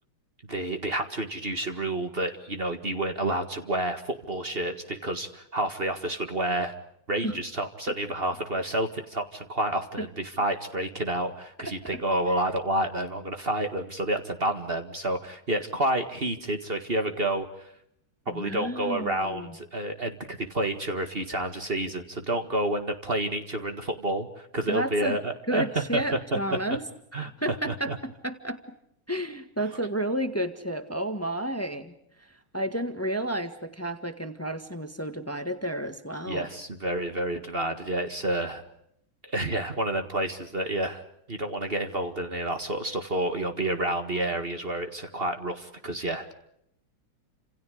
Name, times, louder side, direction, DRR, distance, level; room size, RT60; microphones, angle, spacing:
voice 1, 0.5-6.7 7.1-17.7 18.3-26.4 26.7-26.8 27.1-27.3 27.7-28.0 36.3-38.6 39.2-41.0 41.3-46.3, right 1 dB, 30° right, 7 dB, 1.9 m, -29 dB
voice 2, 11.7-12.0 18.3-19.6 24.7-25.2 25.5-26.8 27.4-28.6 29.1-31.9 32.5-36.5, right 1 dB, 10° left, 9 dB, 1.4 m, -31 dB
30.0 x 27.5 x 5.0 m, 0.74 s
omnidirectional pair, 2.2 m